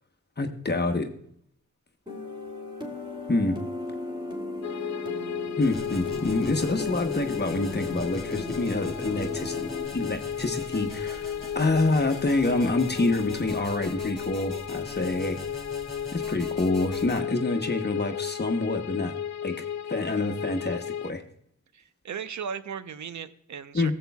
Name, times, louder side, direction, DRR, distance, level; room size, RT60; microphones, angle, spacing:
voice 1, 0.4-1.1 3.3-3.6 5.6-15.4 16.1-19.1 19.4-19.5 19.9-21.2 23.7-23.9, left 2 dB, 30° left, 5 dB, 1.1 m, -27 dB
sound 1, 2.1-9.9, left 2 dB, 15° right, 2.7 m, -36 dB
sound 2, 4.6-21.1, left 9 dB, 60° left, 0.5 m, -34 dB
sound 3, 5.6-17.2, left 1 dB, ahead, 3.0 m, -43 dB
voice 2, 21.7-23.9, right 7 dB, 65° right, 12 dB, 0.7 m, -36 dB
14.5 x 7.7 x 2.3 m, 0.67 s
cardioid pair, 55°, 31 cm